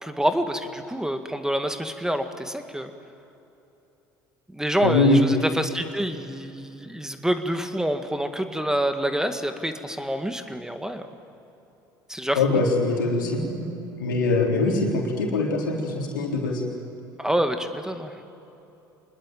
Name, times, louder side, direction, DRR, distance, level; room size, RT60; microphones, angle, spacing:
voice 1, 0.0-2.9 4.5-11.1 12.1-12.6 17.2-18.1, right 1 dB, 5° right, 7 dB, 2.0 m, -27 dB
voice 2, 4.8-5.3 12.4-13.4 14.0-16.6, left 3 dB, 85° left, 0 dB, 3.8 m, -22 dB
25.5 x 21.0 x 9.2 m, 3.0 s
hypercardioid pair, 60°, 10 cm